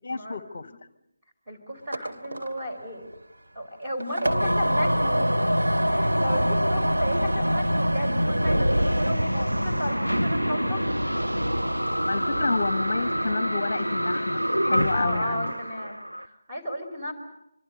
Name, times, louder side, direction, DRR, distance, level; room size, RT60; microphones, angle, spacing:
voice 1, 0.0-0.7 12.1-15.5, left 3 dB, 45° left, 14 dB, 0.9 m, -29 dB
voice 2, 1.5-3.1 3.5-5.2 5.9-10.9 14.9-17.1, equal, 15° right, -1 dB, 4.9 m, -34 dB
sound 1, 1.8-9.1, right 1 dB, 65° right, 2.6 m, -36 dB
sound 2, 4.3-16.2, equal, 90° right, 1.0 m, -25 dB
25.5 x 24.5 x 6.6 m, 0.81 s
figure-of-eight pair, 155°, 0 cm